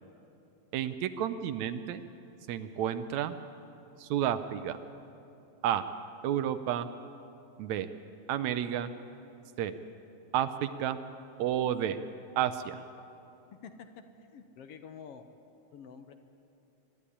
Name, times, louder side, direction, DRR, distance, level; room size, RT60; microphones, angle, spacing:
voice 1, 0.7-2.0 2.5-3.3 4.0-4.8 5.6-5.8 6.2-6.9 7.6-7.9 8.3-8.9 9.6-9.7 10.3-11.0 11.4-12.0 12.4-12.8, right 10 dB, 75° right, 11 dB, 1.9 m, -31 dB
voice 2, 14.3-15.2 15.7-16.1, left 7 dB, 65° left, 8 dB, 1.7 m, -48 dB
23.5 x 12.5 x 10.0 m, 2.8 s
omnidirectional pair, 3.4 m